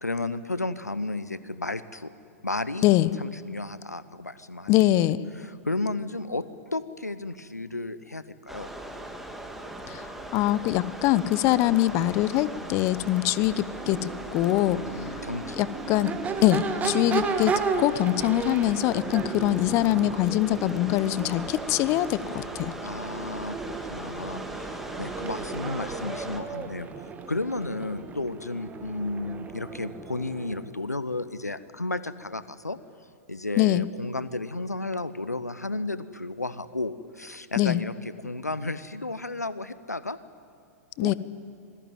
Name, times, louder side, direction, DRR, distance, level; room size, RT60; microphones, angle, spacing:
voice 1, 0.0-2.1 2.4-2.9 3.2-4.7 5.3-6.5 6.7-8.7 14.7-15.7 16.8-17.2 22.8-26.9 27.3-32.8 33.3-40.2 41.0-41.1, left 2 dB, 85° left, 15 dB, 0.9 m, -33 dB
voice 2, 2.8-3.2 4.7-5.2 9.9-14.8 15.6-16.1 16.4-22.7 33.6-33.9 37.6-37.8 41.0-41.1, left 15 dB, 35° left, 18 dB, 0.9 m, -23 dB
sound 1, 8.5-26.4, right 1 dB, 5° right, 2.4 m, -40 dB
Crowd / Race car auto racing / Accelerating revving vroom, 13.6-30.7, right 5 dB, 20° right, 2.0 m, -34 dB
25.5 x 20.0 x 9.3 m, 2.3 s
figure-of-eight pair, 105°, 9 cm